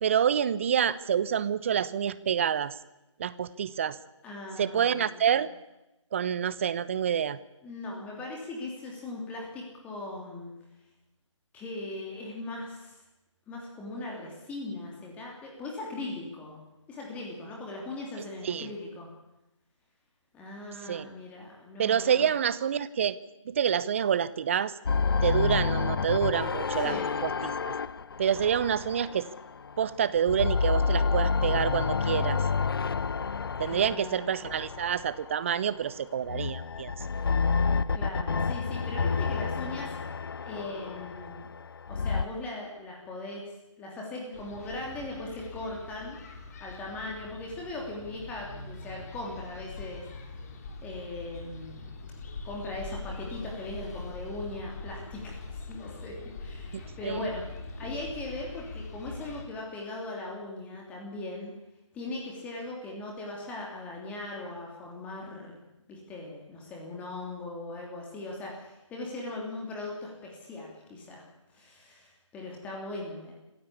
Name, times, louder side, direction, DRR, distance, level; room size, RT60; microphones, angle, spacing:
voice 1, 0.0-2.7 3.2-4.0 4.6-5.5 6.1-7.4 18.4-18.7 20.8-21.1 21.8-23.2 23.5-24.7 25.2-27.0 27.2-27.7 28.2-29.3 29.8-32.4 33.6-36.9 56.7-57.3, right 8 dB, 25° right, 18 dB, 0.8 m, -27 dB
voice 2, 4.2-5.3 7.6-10.5 11.5-13.0 13.5-16.6 16.9-19.1 20.3-22.3 26.8-27.1 33.7-34.3 37.9-39.9 40.4-41.5 41.9-43.5 43.8-46.2 46.6-50.0 50.8-51.8 52.4-57.4 57.8-61.5 61.9-65.6 65.9-71.2 71.5-73.3, left 2 dB, 10° left, -1 dB, 3.1 m, -39 dB
sound 1, 24.9-29.8 30.2-35.5 36.2-42.3, left 5 dB, 45° left, 0.8 m, -29 dB
sound 2, 44.3-59.4, left 3 dB, 30° left, 3.0 m, -42 dB
25.0 x 15.5 x 8.6 m, 0.96 s
figure-of-eight pair, 155°, 16 cm